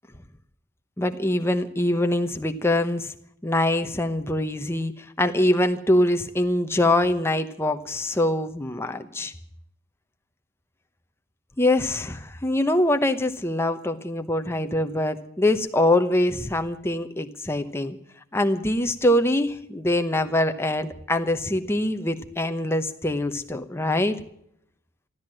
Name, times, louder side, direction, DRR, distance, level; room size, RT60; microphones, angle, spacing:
voice 1, 1.0-3.1 3.4-9.3 11.6-18.0 18.3-24.2, left 1 dB, 10° left, 7 dB, 0.9 m, -24 dB
14.5 x 12.5 x 7.6 m, 0.73 s
head